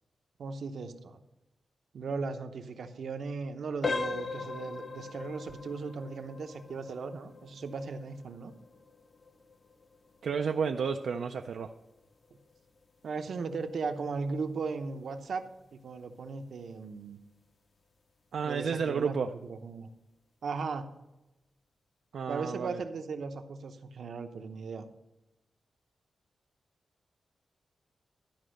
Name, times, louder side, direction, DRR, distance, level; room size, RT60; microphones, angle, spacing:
voice 1, 0.4-1.2 1.9-8.5 13.0-17.2 18.4-19.9 20.4-20.8 22.3-24.8, right 4 dB, 75° right, 7 dB, 0.8 m, -37 dB
sound 1, 3.8-14.5 14.9-15.1 15.7-15.8 16.3-16.4, left 4 dB, 40° left, 0.6 m, -41 dB
voice 2, 10.2-11.7 18.3-19.3 22.1-22.8, right 6 dB, 90° right, 5 dB, 0.4 m, -31 dB
12.0 x 5.1 x 6.4 m, 0.96 s
wide cardioid pair, 125°, 0 cm